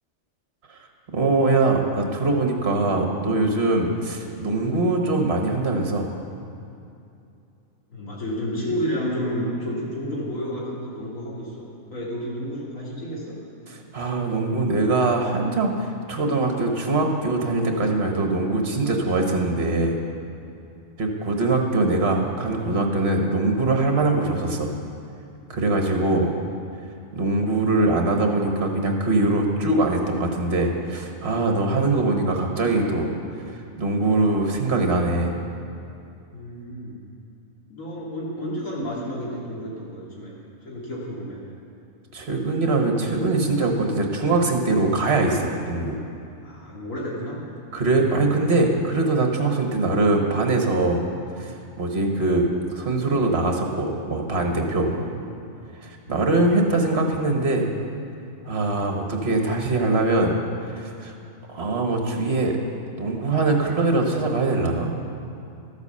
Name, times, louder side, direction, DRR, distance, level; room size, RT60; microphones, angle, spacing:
voice 1, 1.1-6.1 13.9-20.0 21.0-24.7 25.5-26.3 27.1-33.1 33.5-35.3 42.1-46.0 47.7-51.0 51.4-52.5 52.7-54.9 55.8-57.7 58.4-60.3 60.7-61.1 61.5-62.6 63.0-65.0, right 2 dB, 55° right, 2 dB, 1.5 m, -22 dB
voice 2, 7.9-13.4 26.0-26.3 36.3-37.0 37.7-40.3 40.6-41.4 46.4-47.5 54.8-55.3 56.0-56.4, equal, 90° left, -6 dB, 2.7 m, -31 dB
13.0 x 8.2 x 6.8 m, 2.6 s
omnidirectional pair, 1.3 m